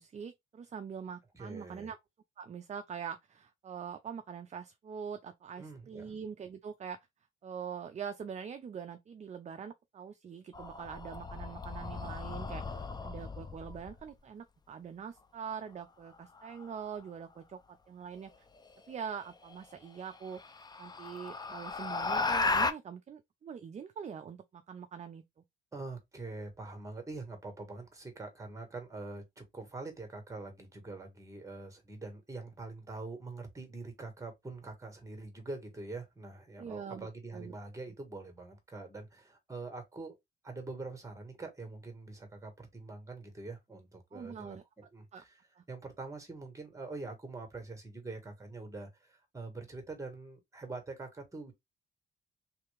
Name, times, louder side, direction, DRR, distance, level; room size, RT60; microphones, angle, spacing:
voice 1, 0.0-2.0 2.4-7.0 7.4-18.3 18.9-20.4 20.8-25.2 36.6-37.5 44.1-44.6 45.1-45.2 45.6-45.7, right 7 dB, 35° right, 0.5 m, -43 dB
voice 2, 1.3-1.9 5.6-6.1 25.7-40.2 40.4-45.4 45.7-51.5, right 3 dB, 15° right, 1.6 m, -44 dB
sound 1, 10.5-14.0 16.4-16.8 18.9-19.0 19.5-19.6 20.1-22.7, left 3 dB, 20° left, 0.5 m, -35 dB
3.2 x 2.9 x 3.3 m
cardioid pair, 90°, 20 cm